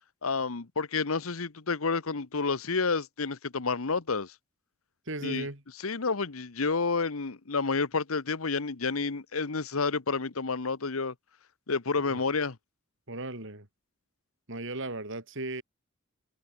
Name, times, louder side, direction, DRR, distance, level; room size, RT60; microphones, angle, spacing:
voice 1, 0.2-4.3 5.2-5.5 5.8-11.1 11.7-12.6, left 4 dB, 80° left, 1.1 m, -30 dB
voice 2, 5.1-5.6 12.1-12.2 13.1-13.7 14.5-15.6, right 2 dB, 60° right, 5.7 m, -36 dB
head